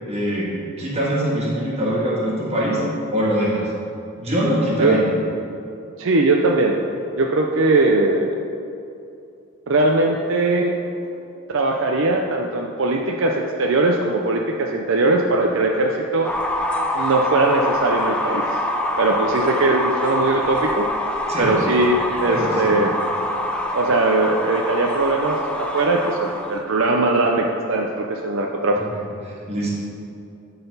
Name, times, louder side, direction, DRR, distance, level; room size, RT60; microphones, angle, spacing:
voice 1, 0.1-0.5 0.8-2.8 3.1-3.7 4.2-5.1 21.3-21.6 22.3-22.8 28.7-29.7, equal, 30° right, -5 dB, 1.8 m, -23 dB
voice 2, 6.0-6.8 7.2-8.3 9.7-10.7 11.5-16.3 16.9-18.4 19.0-20.9 21.4-22.9 23.7-28.8, right 2 dB, 65° right, 1 dB, 0.5 m, -20 dB
sound 1, 16.2-26.6, left 1 dB, 5° left, 0.4 m, -25 dB
12.0 x 4.0 x 5.4 m, 2.6 s
head